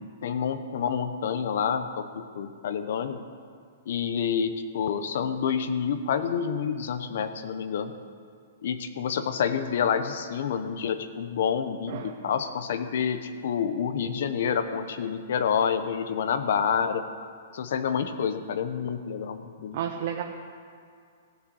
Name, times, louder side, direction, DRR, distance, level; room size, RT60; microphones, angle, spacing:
voice 1, 0.0-3.2 3.9-7.9 8.6-17.0 17.5-19.8, left 7 dB, 55° left, 10 dB, 0.9 m, -28 dB
voice 2, 11.9-12.3 19.7-20.2, right 9 dB, 40° right, 3 dB, 0.7 m, -32 dB
16.5 x 6.5 x 8.0 m, 2.3 s
hypercardioid pair, 175°, 0 cm